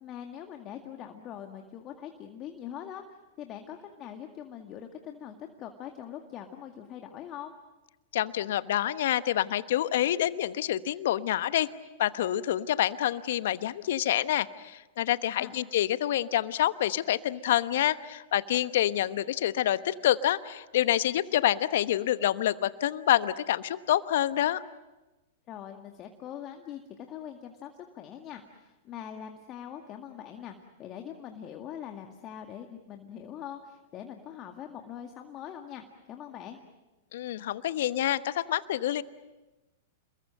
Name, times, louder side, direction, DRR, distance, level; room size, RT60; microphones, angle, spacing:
voice 1, 0.0-3.0 3.4-7.5 15.4-15.6 25.5-36.6, left 9 dB, 35° left, 4 dB, 2.0 m, -43 dB
voice 2, 8.1-11.7 12.0-24.6 37.1-39.0, left 12 dB, 65° left, 14 dB, 1.0 m, -27 dB
28.5 x 22.0 x 7.7 m, 1.1 s
hypercardioid pair, 105°, 0 cm